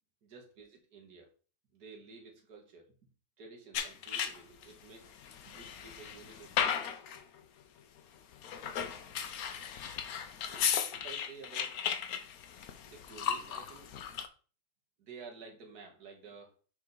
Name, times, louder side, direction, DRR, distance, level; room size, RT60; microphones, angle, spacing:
voice 1, 0.2-1.3 1.7-2.9 3.4-5.1 5.5-7.0 10.5-11.8 12.8-14.0 15.0-16.6, right 4 dB, 90° right, 1 dB, 1.9 m, -52 dB
sound 1, 3.7-4.6 5.2-7.2 8.3-14.3, left 8 dB, 75° left, 1.2 m, -36 dB
6.1 x 4.6 x 3.9 m, 0.38 s
omnidirectional pair, 1.6 m